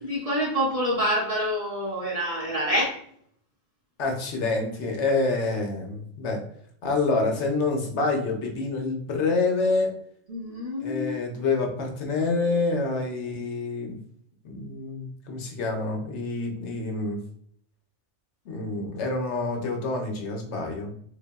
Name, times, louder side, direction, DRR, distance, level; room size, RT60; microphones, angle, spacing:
voice 1, 0.1-3.0 10.3-11.1, equal, 35° right, -6 dB, 0.7 m, -27 dB
voice 2, 4.0-6.4 6.8-9.9 10.8-14.0 14.4-17.2 18.5-20.9, left 3 dB, 70° left, 2 dB, 0.9 m, -27 dB
3.3 x 2.2 x 2.2 m, 0.63 s
omnidirectional pair, 1.3 m